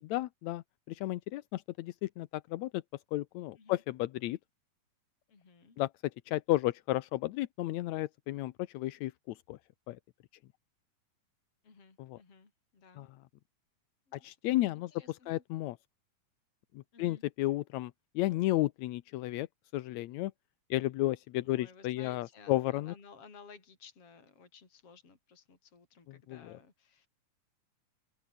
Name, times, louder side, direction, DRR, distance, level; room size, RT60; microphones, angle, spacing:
voice 1, 0.1-2.8 3.1-4.4 5.8-5.9 6.3-9.6 9.9-10.0 12.0-12.2 13.0-13.1 14.2-15.8 16.7-19.5 19.7-20.3 20.7-22.9 26.1-26.6, left 16 dB, 75° left, 1.8 m, -33 dB
voice 2, 5.3-5.8 11.6-13.1 14.1-14.3 14.9-15.4 16.9-17.2 21.4-27.1, left 5 dB, 45° left, 5.6 m, -56 dB
open air
omnidirectional pair, 3.7 m